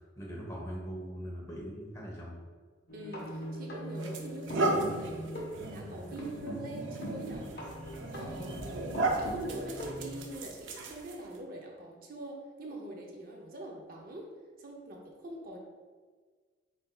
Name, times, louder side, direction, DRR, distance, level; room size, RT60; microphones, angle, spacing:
voice 1, 0.2-2.4, equal, 15° left, -4 dB, 1.0 m, -41 dB
sound 1, 2.9-10.2, equal, 55° left, 1.1 m, -42 dB
voice 2, 2.9-7.5 8.1-8.7 9.1-14.3 14.6-15.6, right 1 dB, 50° right, 0 dB, 0.6 m, -43 dB
sound 2, 3.2-3.4 4.0-11.4, right 2 dB, 90° right, 0.6 m, -35 dB
7.9 x 2.7 x 2.3 m, 1.5 s
head